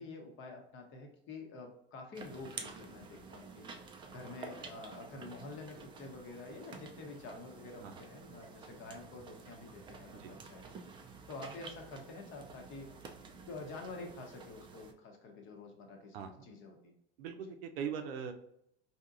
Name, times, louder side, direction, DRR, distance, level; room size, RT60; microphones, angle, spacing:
voice 1, 0.0-3.7 4.1-10.6 11.3-12.9 13.5-16.9, left 3 dB, 40° left, 4 dB, 0.9 m, -48 dB
sound 1, 2.1-14.9, right 4 dB, 15° right, 0.3 m, -51 dB
voice 2, 17.2-18.3, right 7 dB, 75° right, 6 dB, 0.6 m, -40 dB
4.2 x 2.8 x 2.5 m, 0.72 s
hypercardioid pair, 105°, 30 cm